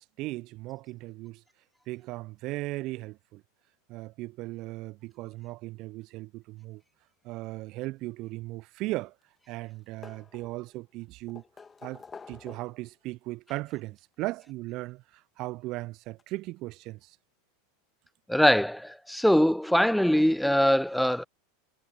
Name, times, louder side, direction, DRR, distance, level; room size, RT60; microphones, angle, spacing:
voice 1, 0.0-1.4 1.9-3.4 3.9-6.8 7.2-9.1 9.5-11.4 11.8-17.2, right 20 dB, 45° right, 0.4 m, -37 dB
sound 1, 8.7-9.4 9.6-10.8 11.3-12.9 14.1-14.2 15.8-15.9 16.2-16.3, left 5 dB, 20° left, 1.9 m, -49 dB
voice 2, 18.3-21.3, equal, ahead, 0.6 m, -22 dB
figure-of-eight pair, 85°, 0 cm